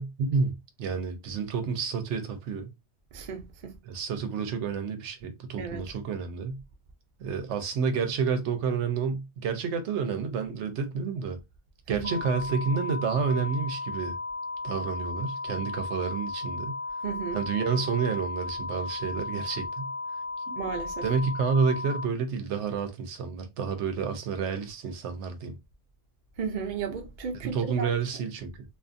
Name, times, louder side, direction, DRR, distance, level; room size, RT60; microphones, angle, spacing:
voice 1, 0.0-2.7 3.9-6.6 7.2-11.4 11.9-14.2 14.6-16.8 17.3-19.9 20.5-20.6 21.0-25.6 27.4-28.5, right 5 dB, 85° right, 0.9 m, -29 dB
voice 2, 3.1-3.8 5.6-5.9 11.9-12.2 17.0-17.4 20.5-21.1 26.4-28.2, right 6 dB, 50° right, 0.6 m, -34 dB
sound 1, 12.0-22.1, left 3 dB, 50° left, 0.8 m, -35 dB
2.5 x 2.5 x 2.5 m
omnidirectional pair, 1.2 m